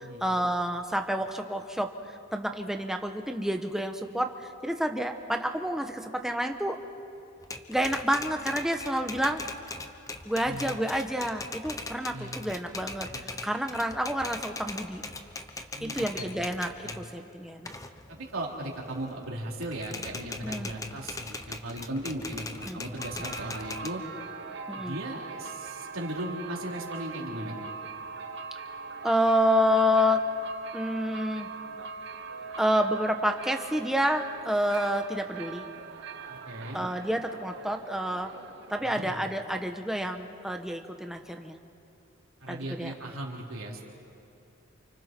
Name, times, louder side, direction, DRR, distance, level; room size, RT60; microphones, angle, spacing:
voice 1, 0.0-1.9 2.3-4.3 4.6-6.8 7.7-9.4 10.2-15.0 15.8-17.7 20.4-20.7 22.7-22.8 24.7-24.9 29.0-30.2 30.7-31.5 32.6-35.7 36.7-38.3 38.7-41.6 42.5-42.9, equal, ahead, 4 dB, 1.1 m, -29 dB
Typewriter, 7.4-17.1 17.5-19.3 19.6-23.9, left 3 dB, 15° left, 0.8 m, -40 dB
voice 2, 10.4-10.7 12.1-12.4 13.1-13.3 15.7-16.3 16.8-17.0 18.1-24.0 24.7-27.7 36.3-36.9 38.8-39.2 42.4-43.8, right 1 dB, 80° right, -2 dB, 3.7 m, -37 dB
sound 1, 22.9-39.3, right 5 dB, 55° right, 1.1 m, -41 dB
29.0 x 29.0 x 4.5 m, 2.7 s
head